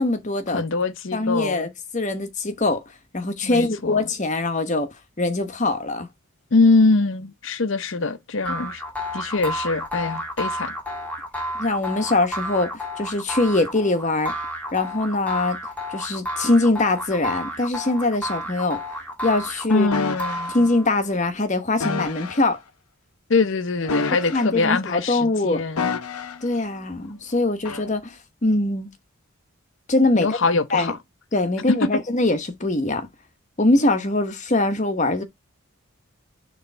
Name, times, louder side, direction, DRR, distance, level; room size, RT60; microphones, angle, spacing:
voice 1, 0.0-0.6 1.1-2.8 3.1-4.9 5.2-6.1 11.6-14.3 14.7-15.6 15.9-18.8 19.2-19.9 20.5-22.6 24.3-25.6 26.4-28.9 29.9-30.4 30.7-30.9 31.3-33.1 33.6-35.2, left 2 dB, 35° left, 1.0 m, -22 dB
voice 2, 0.5-1.7 3.4-4.0 6.5-8.8 9.1-10.7 19.7-20.5 23.3-25.9 30.1-31.0, left 3 dB, 55° left, 0.7 m, -23 dB
sound 1, 8.4-21.0, equal, 5° left, 1.4 m, -31 dB
sound 2, 19.9-20.5 21.8-22.5 23.8-24.7 25.8-26.5 27.6-27.9, left 4 dB, 90° left, 0.8 m, -29 dB
6.7 x 3.2 x 4.4 m
head